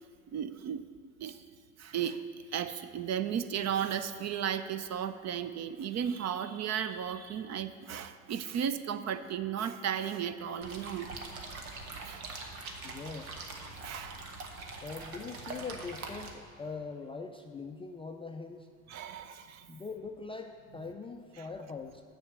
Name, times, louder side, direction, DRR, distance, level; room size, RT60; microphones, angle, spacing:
voice 1, 0.3-0.8 1.2-1.4 1.8-2.2 2.5-11.1 12.0-12.3 13.7-14.2 18.9-19.7, right 8 dB, 40° right, 11 dB, 0.6 m, -35 dB
sound 1, 10.6-16.3, right 3 dB, 85° right, 1.1 m, -43 dB
voice 2, 12.8-13.4 14.8-18.7 19.7-22.0, left 4 dB, 15° left, 4 dB, 0.3 m, -42 dB
7.0 x 6.1 x 6.9 m, 2.2 s
hypercardioid pair, 70°, 42 cm